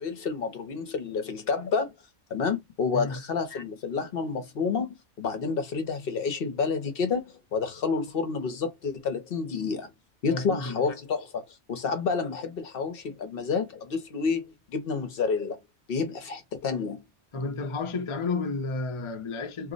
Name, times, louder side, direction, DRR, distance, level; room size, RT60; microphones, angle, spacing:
voice 1, 0.0-1.9 2.3-9.9 10.2-15.6 15.9-17.0, left 5 dB, 60° left, 0.8 m, -29 dB
voice 2, 10.3-10.8 17.3-19.7, left 3 dB, 40° left, 0.5 m, -31 dB
2.7 x 2.0 x 3.8 m
omnidirectional pair, 1.2 m